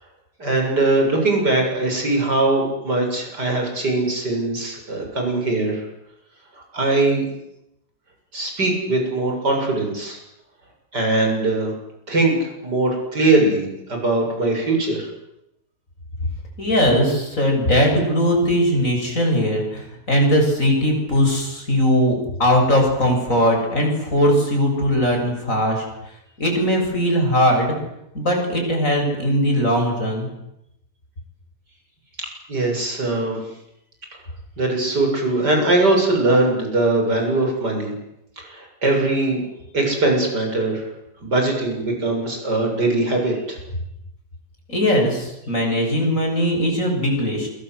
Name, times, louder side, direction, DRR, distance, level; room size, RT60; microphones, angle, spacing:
voice 1, 0.4-5.8 6.7-7.2 8.3-10.2 10.9-11.7 12.1-15.1 32.5-33.4 34.6-37.9 38.4-39.4 39.7-40.8 41.2-43.6, right 2 dB, 75° right, 2 dB, 8.1 m, -21 dB
voice 2, 16.6-25.8 26.4-27.7 28.1-30.3 44.7-47.5, equal, 50° left, 2 dB, 7.9 m, -19 dB
28.0 x 24.5 x 8.2 m, 0.84 s
omnidirectional pair, 1.8 m